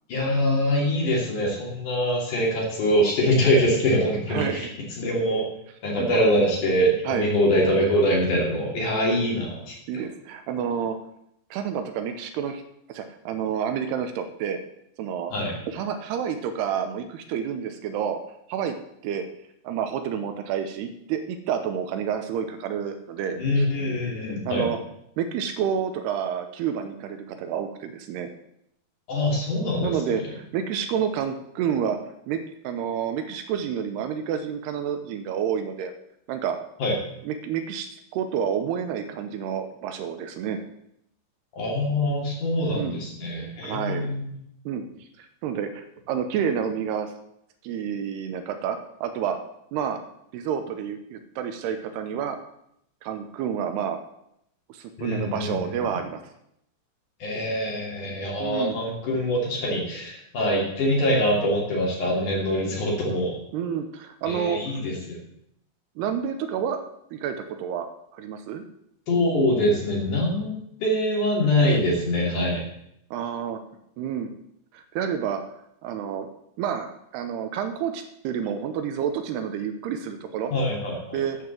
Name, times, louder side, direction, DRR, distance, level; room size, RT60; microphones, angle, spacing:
voice 1, 0.1-4.7 5.0-5.5 5.8-9.7 15.3-15.5 23.4-24.7 29.1-30.2 36.8-37.0 41.6-44.3 55.0-55.7 57.2-63.4 64.3-65.2 69.1-72.6 80.5-81.2, equal, 50° left, -2 dB, 4.1 m, -24 dB
voice 2, 4.3-4.7 6.0-6.4 7.1-7.3 9.9-11.0 11.5-12.6 12.9-14.6 15.0-15.3 15.7-18.2 18.5-18.8 19.0-19.2 19.6-23.7 24.5-24.8 25.2-28.3 29.8-32.0 32.3-32.4 32.6-35.9 36.3-36.6 37.2-40.6 42.7-43.0 43.6-44.1 44.7-44.9 45.2-47.1 47.6-49.4 49.7-50.0 50.3-52.4 53.0-54.0 54.7-56.2 58.4-58.8 63.5-64.8 66.0-66.8 67.1-67.9 68.2-68.6 73.1-73.6 74.0-74.3 74.7-75.4 75.8-76.3 76.6-80.5 81.1-81.4, right 8 dB, 80° right, 7 dB, 2.8 m, -29 dB
12.5 x 5.9 x 7.5 m, 0.76 s
omnidirectional pair, 4.9 m